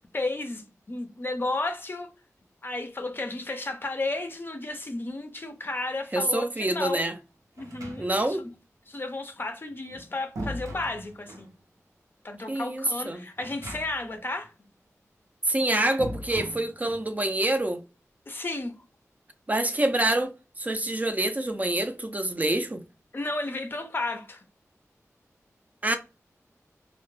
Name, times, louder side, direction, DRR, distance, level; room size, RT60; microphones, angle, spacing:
voice 1, 0.1-2.1 2.6-7.1 7.6-8.5 8.9-11.5 12.2-14.5 18.3-18.8 23.1-24.4, left 2 dB, 40° left, 0.4 m, -33 dB
voice 2, 6.1-7.1 8.0-8.4 12.5-13.2 15.5-17.8 19.5-22.8 25.8-26.0, right 1 dB, 30° right, 0.4 m, -26 dB
sound 1, 7.6-8.4 9.7-11.5 13.4-14.2 14.5-14.6 16.0-17.1, equal, 85° right, 0.6 m, -39 dB
2.1 x 2.0 x 3.0 m
wide cardioid pair, 75°, 6 cm